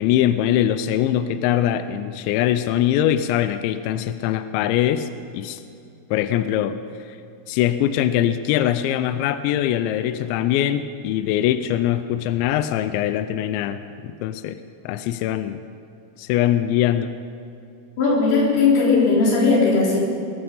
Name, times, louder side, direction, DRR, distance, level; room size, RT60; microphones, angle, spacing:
voice 1, 0.0-5.1 5.3-5.6 6.1-6.8 7.5-14.6 14.8-15.6 16.2-17.2, left 11 dB, 85° left, 11 dB, 2.6 m, -22 dB
voice 2, 18.0-20.0, left 4 dB, 55° left, -5 dB, 5.2 m, -17 dB
20.5 x 12.5 x 5.3 m, 2.6 s
omnidirectional pair, 5.8 m